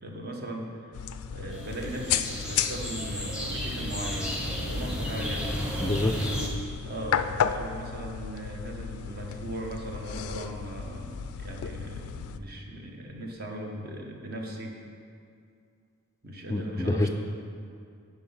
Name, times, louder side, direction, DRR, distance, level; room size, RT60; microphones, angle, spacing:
voice 1, 0.0-5.5 6.8-14.8 16.2-17.1, right 1 dB, 45° right, 1 dB, 1.1 m, -38 dB
sound 1, 0.9-12.4, left 8 dB, 85° left, 0.4 m, -34 dB
sound 2, 1.5-6.5, equal, 5° right, 1.0 m, -33 dB
voice 2, 5.8-6.3 16.5-17.1, left 2 dB, 15° left, 6 dB, 0.4 m, -27 dB
9.9 x 5.1 x 5.5 m, 2.4 s
head